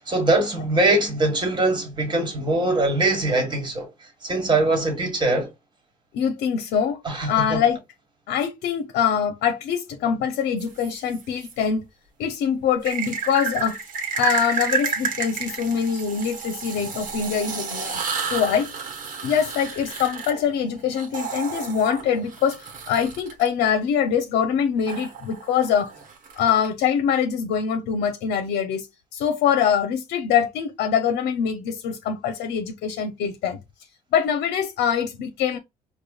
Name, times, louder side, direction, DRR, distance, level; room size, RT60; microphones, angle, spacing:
voice 1, 0.1-3.9 4.2-5.5 7.0-7.6, right 2 dB, 25° right, 1.5 m, -22 dB
voice 2, 6.1-7.8 8.3-11.8 12.2-13.8 14.1-18.0 18.3-18.7 19.2-25.9 26.3-28.9 29.1-33.6 34.1-35.6, left 7 dB, 75° left, 0.6 m, -24 dB
sound 1, 10.6-11.5 12.8-23.5 24.9-26.7, right 5 dB, 50° right, 1.1 m, -31 dB
4.9 x 2.2 x 2.3 m
cardioid pair, 110°, 17 cm